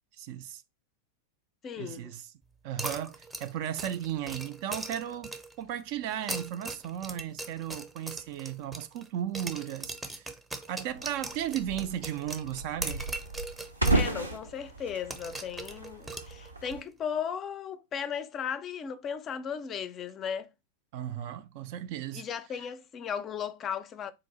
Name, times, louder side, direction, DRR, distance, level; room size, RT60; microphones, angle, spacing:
voice 1, 0.2-0.6 1.8-2.2 2.6-10.3 10.7-13.0 20.9-22.2, right 11 dB, 45° right, 0.4 m, -35 dB
voice 2, 1.6-2.2 13.9-20.5 22.1-24.1, left 7 dB, 30° left, 0.4 m, -36 dB
sound 1, 2.8-5.6 6.1-9.1 9.3-14.0 14.3-14.4 15.1-16.7, right 2 dB, 10° right, 0.7 m, -39 dB
sound 2, 10.9-16.8, right 2 dB, 85° right, 0.6 m, -34 dB
3.8 x 2.5 x 4.1 m
figure-of-eight pair, 90°, 0 cm